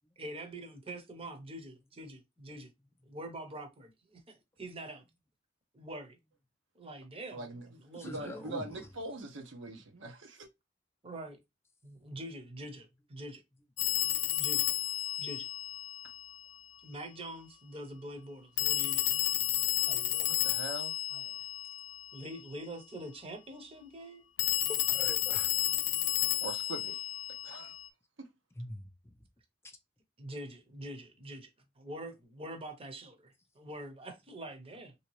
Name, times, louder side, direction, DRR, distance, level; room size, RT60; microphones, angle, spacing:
voice 1, 0.2-2.7 3.1-5.0 5.7-6.2 6.8-8.5 11.0-11.4 11.8-13.4 14.4-14.7 15.2-15.5 16.8-19.0 19.8-20.5 21.1-21.3 22.1-24.2 30.2-31.5 31.8-34.9, right 1 dB, 30° right, 0.8 m, -45 dB
voice 2, 7.3-7.7 8.0-10.5 20.3-20.9 26.4-27.0 27.4-27.7, right 2 dB, 85° right, 0.8 m, -42 dB
voice 3, 7.9-8.9 24.9-25.5 28.6-29.1, left 1 dB, 15° left, 0.4 m, -44 dB
Telephone, 13.8-16.4 18.6-22.2 24.4-27.9, left 14 dB, 85° left, 0.4 m, -32 dB
3.3 x 2.8 x 3.0 m
head